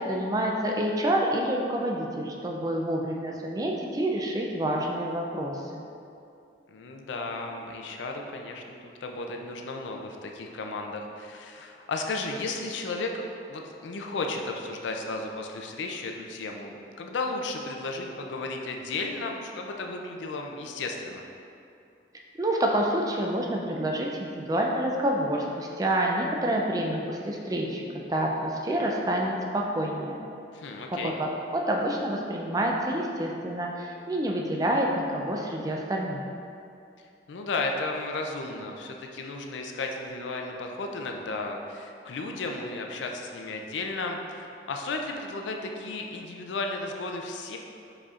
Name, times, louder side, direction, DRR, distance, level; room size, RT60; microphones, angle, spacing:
voice 1, 0.0-5.8 22.4-30.3 31.0-36.2, right 1 dB, 20° right, 0 dB, 0.3 m, -28 dB
voice 2, 6.7-13.2 13.5-21.2 30.5-31.2 37.3-47.6, left 3 dB, 85° left, 2 dB, 0.4 m, -34 dB
5.0 x 4.1 x 2.4 m, 2.6 s
head